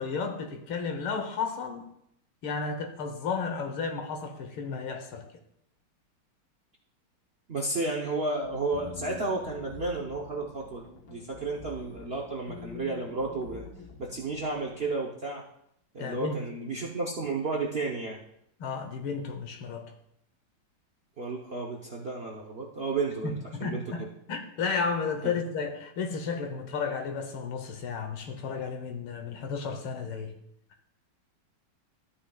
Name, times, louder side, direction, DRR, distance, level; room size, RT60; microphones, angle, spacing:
voice 1, 0.0-1.9 2.4-5.3 16.0-16.4 18.6-19.8 23.2-30.3, left 5 dB, 90° left, 5 dB, 1.9 m, -33 dB
voice 2, 7.5-10.8 11.1-13.6 14.0-15.4 15.9-18.2 21.2-23.8 25.2-25.3, right 3 dB, 55° right, -1 dB, 0.7 m, -32 dB
sound 1, 8.4-14.9, left 5 dB, 75° left, 1.8 m, -46 dB
13.0 x 8.9 x 2.3 m, 0.75 s
omnidirectional pair, 2.2 m